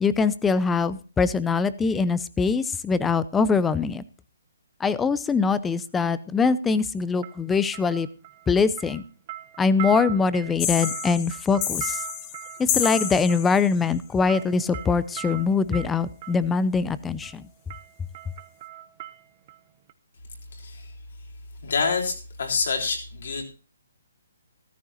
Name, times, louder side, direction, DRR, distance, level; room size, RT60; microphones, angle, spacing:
voice 1, 0.0-4.0 4.8-8.1 8.5-9.0 9.6-12.0 12.6-17.5, left 5 dB, 10° left, 16 dB, 0.5 m, -23 dB
sound 1, 5.3-5.5 7.2-8.5 8.8-16.5 17.2-17.4 17.7-19.6 19.9-20.0, right 13 dB, 35° right, 0.8 m, -39 dB
sound 2, 10.6-13.8, left 9 dB, 25° left, 1.4 m, -29 dB
voice 2, 20.5-20.9 21.6-23.4, left 4 dB, 65° left, 1 dB, 3.8 m, -27 dB
14.0 x 13.5 x 2.8 m, 0.34 s
hypercardioid pair, 150°, 0 cm